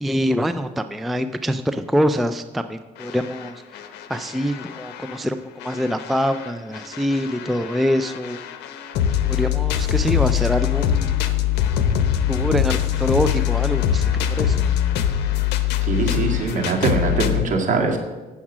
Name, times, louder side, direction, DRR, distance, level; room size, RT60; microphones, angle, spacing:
voice 1, 0.0-8.4 9.2-11.1 12.3-14.6, equal, ahead, 9 dB, 0.4 m, -25 dB
sound 1, 3.0-5.2 5.6-17.4, left 10 dB, 80° left, 0.8 m, -23 dB
voice 2, 15.9-18.0, right 3 dB, 50° right, 1 dB, 1.9 m, -22 dB
8.7 x 7.1 x 6.1 m, 1.2 s
cardioid pair, 110°, 17 cm